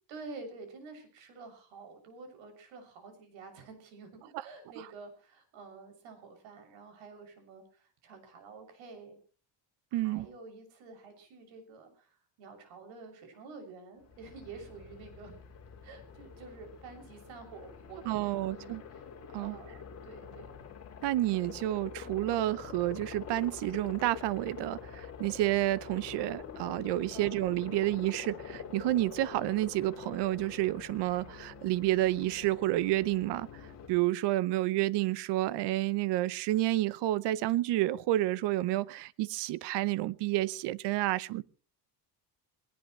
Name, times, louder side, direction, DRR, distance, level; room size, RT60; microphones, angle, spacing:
voice 1, 0.1-9.2 9.9-15.4 15.8-19.0 19.4-20.6 27.1-27.4, right 4 dB, 80° right, 7.1 m, -49 dB
voice 2, 9.9-10.3 18.0-18.8 19.3-19.6 21.0-33.5 33.9-41.4, right 16 dB, 65° right, 0.9 m, -30 dB
Aircraft, 14.0-33.9, left 6 dB, 35° left, 4.9 m, -46 dB
21.0 x 19.0 x 3.2 m
cardioid pair, 170°, 45 cm